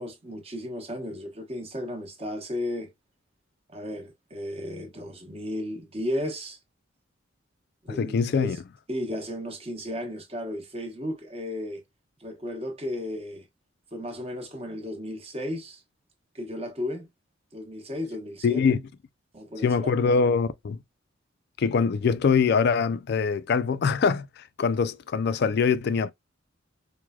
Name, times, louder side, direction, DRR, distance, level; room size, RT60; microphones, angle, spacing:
voice 1, 0.0-2.9 3.7-6.6 7.8-8.6 8.9-11.8 12.2-13.5 13.9-15.8 16.3-17.1 17.5-18.8 19.3-19.7, left 1 dB, 30° right, 0.9 m, -34 dB
voice 2, 7.9-8.6 18.4-18.8 19.6-20.8 21.6-26.1, left 5 dB, 55° left, 0.3 m, -23 dB
4.6 x 2.1 x 2.2 m
head